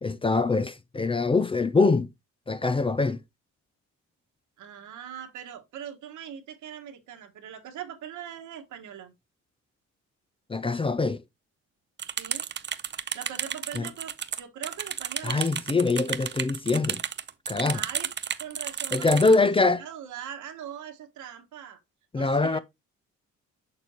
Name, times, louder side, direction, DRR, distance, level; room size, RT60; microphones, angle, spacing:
voice 1, 0.0-2.1 2.5-3.2 10.5-11.2 13.8-13.9 15.2-17.0 17.5-17.8 18.9-19.8 22.1-22.6, left 3 dB, 20° left, 0.5 m, -23 dB
voice 2, 4.6-9.1 12.0-12.4 13.1-15.4 17.5-18.1 18.4-19.5 19.8-21.8 22.1-22.6, right 9 dB, 80° right, 1.6 m, -41 dB
sound 1, 12.0-19.4, right 8 dB, 35° right, 0.7 m, -32 dB
6.8 x 6.7 x 2.9 m
cardioid pair, 90°, 30 cm